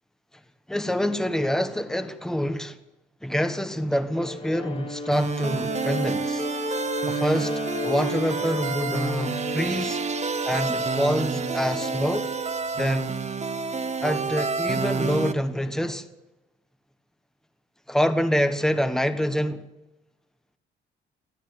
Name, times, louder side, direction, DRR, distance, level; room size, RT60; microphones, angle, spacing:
voice 1, 0.7-2.8 3.2-6.5 7.0-10.0 10.4-12.3 12.8-13.2 14.0-16.1 17.9-19.7, equal, ahead, 1.4 m, -26 dB
Bowed string instrument, 4.1-12.5, left 2 dB, 30° left, 2.0 m, -35 dB
sound 1, 5.1-15.3, right 5 dB, 35° right, 1.5 m, -29 dB
29.5 x 10.0 x 9.7 m
cardioid pair, 90°, 20 cm